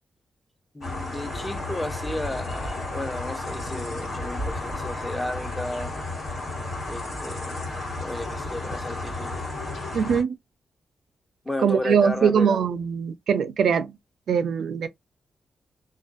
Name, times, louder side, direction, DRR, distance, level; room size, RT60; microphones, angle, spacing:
voice 1, 0.7-5.9 6.9-7.7 8.0-9.4 11.5-12.7, left 1 dB, 10° left, 0.5 m, -33 dB
sound 1, 0.8-10.2, left 2 dB, 70° left, 1.4 m, -32 dB
voice 2, 9.9-10.3 11.6-13.9 14.3-14.9, right 7 dB, 80° right, 0.3 m, -22 dB
2.4 x 2.2 x 2.5 m
cardioid pair, 110°, 0 cm